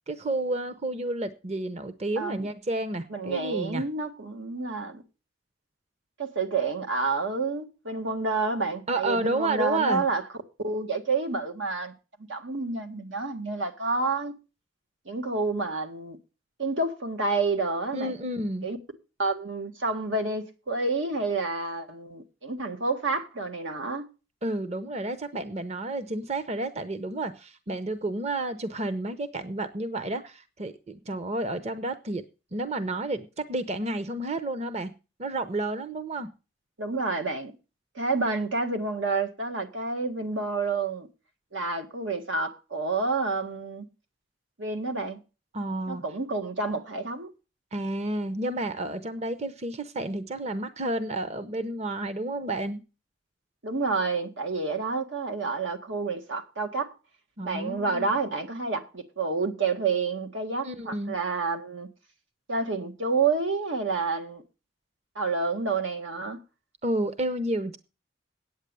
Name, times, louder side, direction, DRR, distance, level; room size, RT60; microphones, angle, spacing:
voice 1, 0.1-3.8 8.9-10.1 17.9-18.7 24.4-32.2 32.5-34.9 35.2-36.3 45.5-46.0 47.7-52.8 57.4-58.0 60.6-61.1 66.8-67.8, right 2 dB, 35° right, 0.7 m, -31 dB
voice 2, 2.1-2.5 3.1-5.0 6.2-10.2 10.6-11.9 12.3-14.3 15.0-16.2 16.6-18.1 18.6-18.8 19.2-24.0 36.8-37.5 37.9-41.1 41.5-43.8 44.6-45.2 45.9-47.3 53.6-56.9 57.4-61.9 62.5-64.4 65.1-66.4, right 3 dB, 90° right, 1.7 m, -29 dB
8.9 x 8.4 x 6.8 m
head